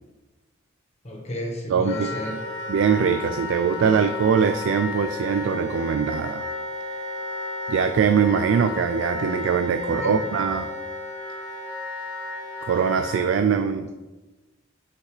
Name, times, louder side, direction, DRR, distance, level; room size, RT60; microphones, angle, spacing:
voice 1, 1.0-2.4 10.0-10.2, equal, 35° left, 0 dB, 1.2 m, -32 dB
voice 2, 1.7-2.1 2.7-6.4 7.7-10.7 12.6-13.9, right 6 dB, 85° right, 8 dB, 0.3 m, -22 dB
Wind instrument woodwind instrument, 1.9-13.3, left 2 dB, 85° left, 1.7 m, -33 dB
5.9 x 5.7 x 3.2 m, 1.2 s
head